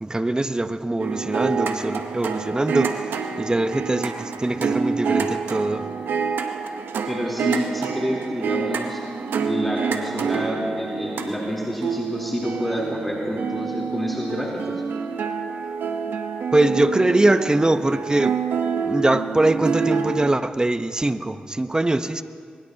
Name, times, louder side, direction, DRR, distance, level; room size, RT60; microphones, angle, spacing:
voice 1, 0.0-5.9 16.5-18.4 18.8-22.2, right 2 dB, 25° right, 11 dB, 0.9 m, -22 dB
sound 1, 1.0-20.3, right 6 dB, 85° right, 0.8 m, -27 dB
voice 2, 7.1-9.0 9.4-14.6, equal, 5° left, -4 dB, 3.6 m, -28 dB
23.0 x 21.0 x 2.9 m, 2.1 s
supercardioid pair, 45°, 3 cm